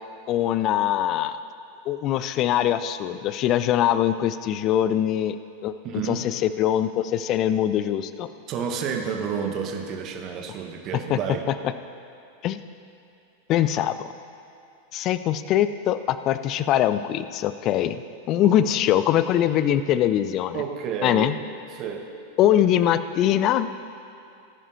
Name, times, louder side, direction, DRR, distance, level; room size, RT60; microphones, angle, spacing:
voice 1, 0.3-1.4 1.9-5.4 5.6-5.7 6.1-8.3 11.1-11.2 12.4-12.6 13.5-13.9 14.9-18.0 18.3-20.6 21.0-21.3 22.4-23.7, left 11 dB, 35° left, 12 dB, 0.5 m, -22 dB
voice 2, 5.8-6.3 8.5-11.5 18.4-18.7 20.5-21.4 21.7-22.1, right 7 dB, 35° right, 4 dB, 1.2 m, -30 dB
19.0 x 11.0 x 2.8 m, 2.6 s
figure-of-eight pair, 90°, 0 cm